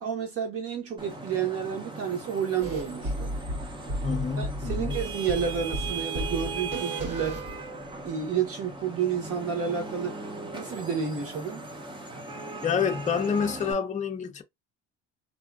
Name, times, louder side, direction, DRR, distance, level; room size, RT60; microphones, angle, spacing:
voice 1, 0.0-3.3 4.4-7.4 8.0-10.2 10.5-11.7, right 7 dB, 45° right, 1.2 m, -30 dB
Vehicle horn car horn honking / Traffic noise roadway noise, 1.0-13.7, right 3 dB, 15° right, 0.6 m, -38 dB
sound 1, 2.6-8.1, right 1 dB, 75° right, 1.4 m, -34 dB
voice 2, 4.0-5.0 12.6-14.4, left 6 dB, 25° left, 0.6 m, -28 dB
2.8 x 2.4 x 2.4 m
cardioid pair, 105°, 31 cm